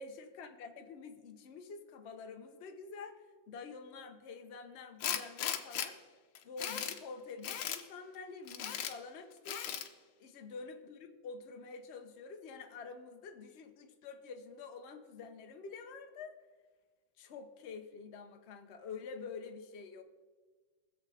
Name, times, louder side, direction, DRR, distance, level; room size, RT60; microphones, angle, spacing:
voice 1, 0.0-6.0 6.4-9.6 10.2-16.3 17.2-20.0, left 4 dB, 45° left, 6 dB, 0.9 m, -48 dB
Tools, 5.0-5.9 6.4-7.0 7.4-7.8 8.5-8.9 9.5-9.9, left 9 dB, 80° left, 1.5 m, -37 dB
19.5 x 7.3 x 4.2 m, 1.4 s
omnidirectional pair, 2.1 m